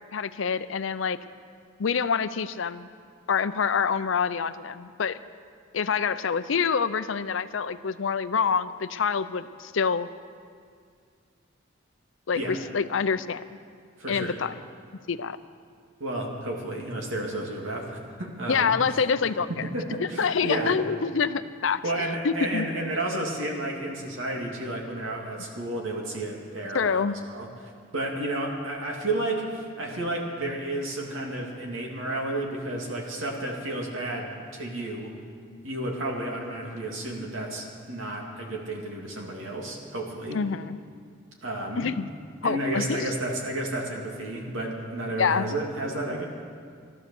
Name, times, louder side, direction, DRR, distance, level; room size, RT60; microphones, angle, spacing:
voice 1, 0.1-1.2 1.8-2.9 3.3-5.2 5.7-10.1 12.3-13.4 14.1-14.5 15.1-15.4 18.5-19.5 20.0-22.9 26.7-27.2 35.5-35.6 40.3-40.8 41.8-42.1 42.4-43.1 45.2-45.5, left 6 dB, 75° left, 13 dB, 0.5 m, -26 dB
voice 2, 14.0-14.3 16.0-18.7 19.5-20.7 21.8-27.5 27.9-35.1 35.6-40.4 41.4-41.9 42.4-46.3, right 1 dB, 85° right, -1 dB, 2.5 m, -31 dB
13.5 x 12.5 x 7.0 m, 2.1 s
head